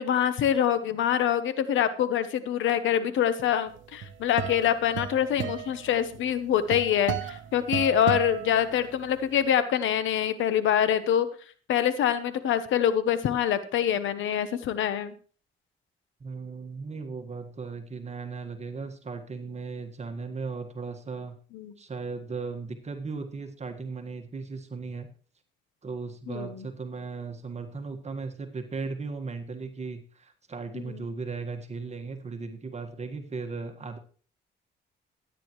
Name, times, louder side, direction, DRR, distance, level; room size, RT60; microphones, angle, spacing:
voice 1, 0.0-11.3 11.7-15.1 21.5-21.7 26.3-26.6 30.7-31.0, left 9 dB, 80° left, 12 dB, 1.0 m, -25 dB
sound 1, 3.8-9.2, right 9 dB, 75° right, 0.9 m, -35 dB
voice 2, 16.2-21.4 21.8-25.1 25.8-34.0, right 4 dB, 35° right, 5 dB, 1.6 m, -37 dB
15.5 x 9.3 x 3.1 m, 0.40 s
cardioid pair, 90°, 20 cm